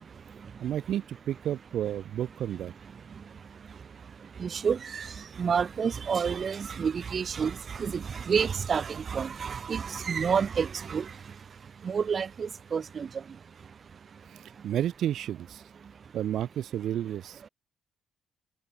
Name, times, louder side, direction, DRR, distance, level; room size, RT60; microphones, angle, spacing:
voice 1, 0.6-2.7 6.4-6.5 14.3-15.6 16.1-17.4, right 11 dB, 70° right, 3.8 m, -31 dB
voice 2, 4.4-5.1 5.4-7.5 7.8-11.0 11.9-13.1, right 6 dB, 45° right, 3.6 m, -29 dB
cardioid pair, 90°, 0 cm